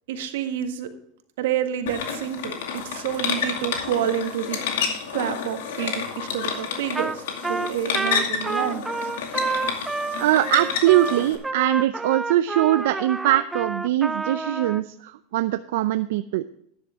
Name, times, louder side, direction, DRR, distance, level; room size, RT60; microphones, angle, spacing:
voice 1, 0.1-0.9 1.4-4.6 5.1-9.1, right 10 dB, 85° right, 7 dB, 1.8 m, -29 dB
sound 1, 1.9-11.3, left 6 dB, 85° left, 2.3 m, -30 dB
Trumpet, 7.0-7.2 7.4-14.8, right 3 dB, 5° right, 0.4 m, -29 dB
voice 2, 10.2-16.4, right 14 dB, 65° right, 11 dB, 0.5 m, -22 dB
12.5 x 9.9 x 3.6 m, 0.71 s
supercardioid pair, 175°, 0 cm